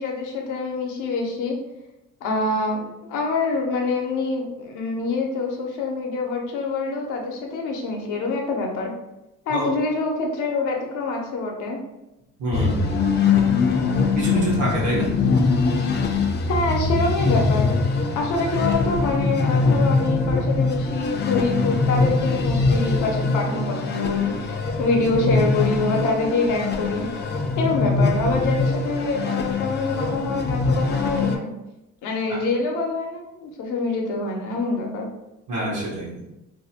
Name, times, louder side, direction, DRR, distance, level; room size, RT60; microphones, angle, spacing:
voice 1, 0.0-1.6 2.2-8.9 9.5-11.8 16.5-17.7 18.2-27.1 27.6-31.5 32.0-35.1, left 3 dB, 85° left, 1 dB, 0.6 m, -25 dB
voice 2, 12.4-12.9 14.1-15.1 32.3-32.4 35.5-36.2, right 1 dB, 75° right, -4 dB, 0.9 m, -26 dB
sound 1, 12.5-31.4, left 4 dB, 35° left, 0.4 m, -22 dB
2.5 x 2.0 x 2.7 m, 0.93 s
cardioid pair, 90°, 30 cm